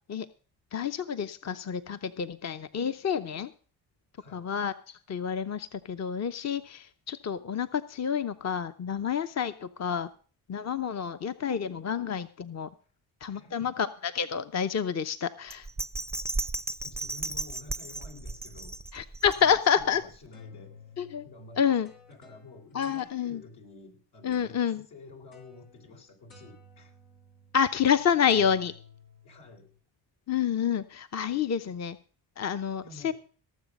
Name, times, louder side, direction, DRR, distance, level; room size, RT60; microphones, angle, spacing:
voice 1, 0.7-3.5 4.3-10.1 10.5-12.7 13.2-15.7 18.9-20.0 21.0-21.2 21.6-21.9 22.7-23.4 24.2-24.8 27.5-28.7 30.3-31.9 32.4-33.1, left 8 dB, 35° left, 11 dB, 0.8 m, -28 dB
voice 2, 4.1-4.5 12.8-12.9 13.3-13.8 16.8-18.8 19.3-20.9 21.2-27.0 29.2-29.7 31.6-31.8 32.8-33.1, left 3 dB, 70° left, 2 dB, 4.2 m, -50 dB
Bell, 15.5-19.8 20.3-20.4, right 2 dB, 5° right, 0.5 m, -35 dB
sound 1, 20.0-23.6 24.3-24.8 25.3-26.0 26.3-29.8, left 4 dB, 85° left, 4.5 m, -53 dB
17.5 x 7.3 x 5.3 m, 0.42 s
supercardioid pair, 60°, 48 cm